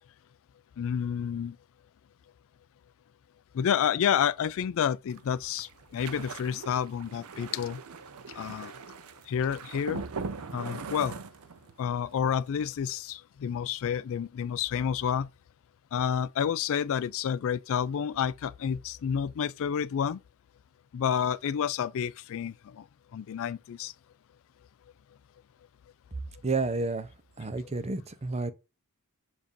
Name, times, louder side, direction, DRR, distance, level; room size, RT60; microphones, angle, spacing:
voice 1, 0.8-1.6 3.5-7.8 8.3-8.7 9.3-10.0 10.5-11.1 11.8-15.3 15.9-20.2 20.9-22.8 23.1-23.9, left 8 dB, 65° left, 0.3 m, -29 dB
sound 1, 5.1-11.9 12.2-12.5 12.7-12.9, right 4 dB, 75° right, 0.6 m, -41 dB
voice 2, 26.4-27.1 27.4-28.5, right 3 dB, 30° right, 0.6 m, -30 dB
7.2 x 2.6 x 5.4 m
head